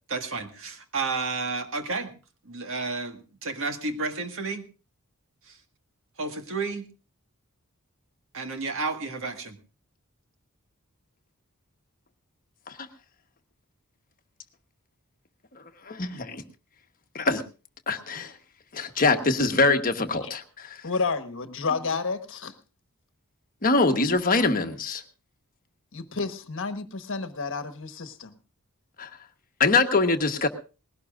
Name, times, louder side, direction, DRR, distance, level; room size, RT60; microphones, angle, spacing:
voice 1, 0.1-2.1 2.4-4.6 5.4-5.6 6.2-6.9 8.3-9.6, right 4 dB, 65° right, 6 dB, 1.7 m, -31 dB
voice 2, 15.8-16.4 17.1-17.4 17.9-18.3 18.7-20.8 23.6-25.0 29.0-29.1 29.6-30.5, left 3 dB, 40° left, 6 dB, 1.2 m, -23 dB
voice 3, 20.8-22.5 25.9-28.4, left 4 dB, 60° left, 9 dB, 1.2 m, -30 dB
20.0 x 17.0 x 2.5 m, 0.33 s
head